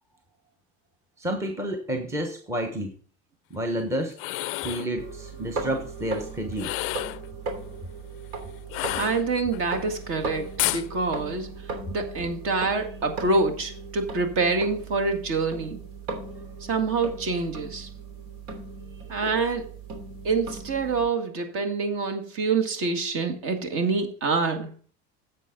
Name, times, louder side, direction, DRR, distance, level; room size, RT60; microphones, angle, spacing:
voice 1, 1.2-2.9 3.5-4.2 4.6-6.7, right 1 dB, 10° right, 4 dB, 1.0 m, -30 dB
sound 1, 4.1-4.9 6.5-7.3 8.7-9.6 10.6-10.9, left 20 dB, 45° left, 0.4 m, -30 dB
sound 2, 5.0-21.0, right 4 dB, 80° right, 3.0 m, -38 dB
voice 2, 8.9-15.8 16.7-17.9 19.1-19.7 20.2-24.7, right 4 dB, 45° right, 5 dB, 2.0 m, -26 dB
10.0 x 7.7 x 3.8 m, 0.40 s
cardioid pair, 150°, 30 cm